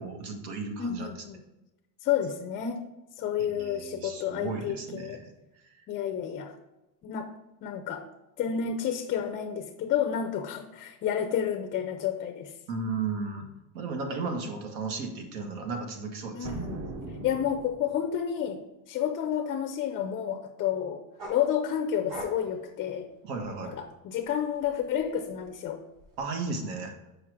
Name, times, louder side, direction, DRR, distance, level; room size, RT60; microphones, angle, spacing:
voice 1, 0.0-1.1 3.4-5.3 5.6-5.8 12.7-13.5 13.7-16.5 23.2-23.8 26.2-26.9, right 4 dB, 80° right, 4 dB, 1.7 m, -35 dB
voice 2, 0.8-1.4 2.0-2.8 3.2-5.2 5.9-6.5 7.0-7.3 7.6-8.0 8.4-12.5 16.3-16.8 17.2-18.6 18.9-21.0 21.3-23.1 23.6-25.8, left 9 dB, 25° left, 6 dB, 0.4 m, -30 dB
sound 1, 16.4-18.2, right 2 dB, 35° right, 0.8 m, -39 dB
sound 2, 21.2-23.8 24.2-26.2, right 1 dB, 55° right, 3.0 m, -44 dB
7.2 x 5.1 x 4.9 m, 0.96 s
cardioid pair, 150°, 49 cm